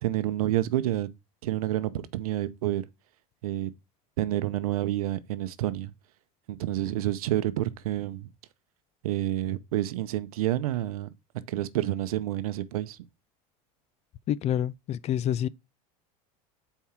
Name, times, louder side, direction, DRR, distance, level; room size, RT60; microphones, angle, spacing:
voice 1, 0.0-1.1 1.4-2.8 3.4-3.7 4.2-5.9 6.5-8.3 9.0-11.1 11.5-13.0, right 14 dB, 90° right, 0.7 m, -29 dB
voice 2, 14.3-15.5, left 10 dB, 35° left, 0.4 m, -27 dB
7.3 x 4.6 x 4.4 m
supercardioid pair, 115°, 18 cm